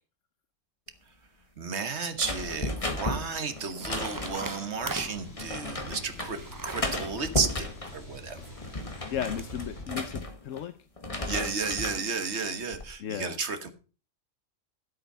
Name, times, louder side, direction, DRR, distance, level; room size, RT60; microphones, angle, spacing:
voice 1, 1.6-7.7 7.9-8.4 11.2-13.7, right 4 dB, 60° right, 10 dB, 1.6 m, -32 dB
sound 1, 2.2-4.7 5.4-6.3 6.7-8.0 8.4-10.6 11.0-12.0 12.5-12.9, left 2 dB, 25° left, 1.6 m, -34 dB
sound 2, 2.2-9.5, right 2 dB, 20° right, 0.8 m, -43 dB
sound 3, 4.8-9.8, left 2 dB, 55° left, 3.3 m, -46 dB
voice 2, 9.1-10.7 13.0-13.4, left 9 dB, 80° left, 11 dB, 1.1 m, -34 dB
12.0 x 8.2 x 5.5 m, 0.36 s
omnidirectional pair, 1.3 m